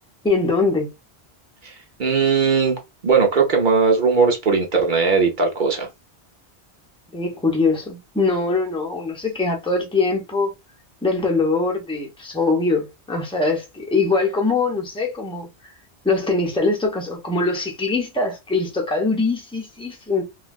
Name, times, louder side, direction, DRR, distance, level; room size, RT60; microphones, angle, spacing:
voice 1, 0.2-0.9 7.1-10.5 11.0-15.5 16.0-20.2, left 3 dB, 5° left, 0.7 m, -22 dB
voice 2, 2.0-5.9, right 5 dB, 50° right, 0.8 m, -19 dB
3.1 x 2.4 x 2.3 m
omnidirectional pair, 1.1 m